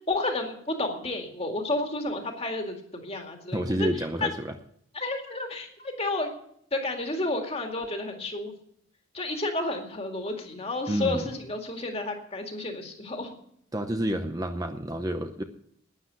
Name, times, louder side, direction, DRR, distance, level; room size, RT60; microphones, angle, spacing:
voice 1, 0.1-3.9 4.2-4.3 4.9-6.3 6.7-8.5 9.1-13.3, left 2 dB, 30° left, 3 dB, 2.1 m, -31 dB
voice 2, 3.5-4.6 10.9-11.3 13.7-15.4, right 1 dB, 20° right, 6 dB, 0.7 m, -29 dB
12.0 x 9.9 x 7.9 m, 0.69 s
head